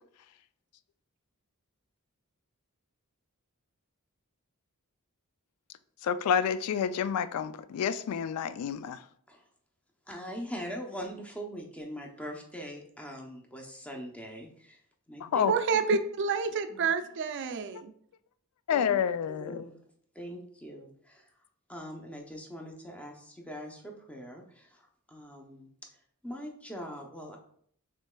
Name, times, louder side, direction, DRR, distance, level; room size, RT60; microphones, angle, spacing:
voice 1, 6.0-9.0 15.2-15.5 18.7-19.6, left 7 dB, 80° left, 0.3 m, -29 dB
voice 2, 10.1-14.8 15.1-15.9 16.7-16.9 18.7-19.0 19.3-19.8 20.1-21.2 21.7-27.4, equal, 5° left, 0.6 m, -42 dB
voice 3, 15.4-17.9, right 5 dB, 55° right, 0.4 m, -29 dB
6.5 x 3.1 x 2.2 m
head